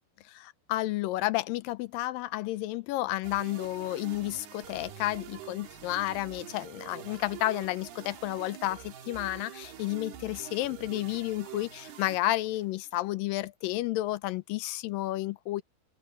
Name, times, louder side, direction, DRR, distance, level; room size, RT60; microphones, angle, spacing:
voice 1, 0.3-15.6, left 16 dB, 80° left, 2.2 m, -31 dB
sound 1, 3.2-12.9, right 10 dB, 85° right, 4.3 m, -46 dB
omnidirectional pair, 4.4 m